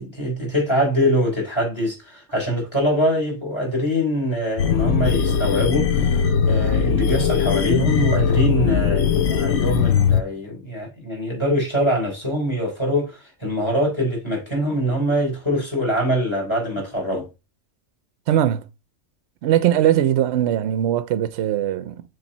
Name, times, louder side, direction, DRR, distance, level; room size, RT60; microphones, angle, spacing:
voice 1, 0.0-17.3, equal, 20° left, 3.6 m, -23 dB
sound 1, 4.6-10.2, left 7 dB, 60° left, 0.9 m, -20 dB
voice 2, 18.3-18.7 19.4-22.0, right 11 dB, 65° right, 0.8 m, -20 dB
7.2 x 3.3 x 4.1 m
omnidirectional pair, 1.4 m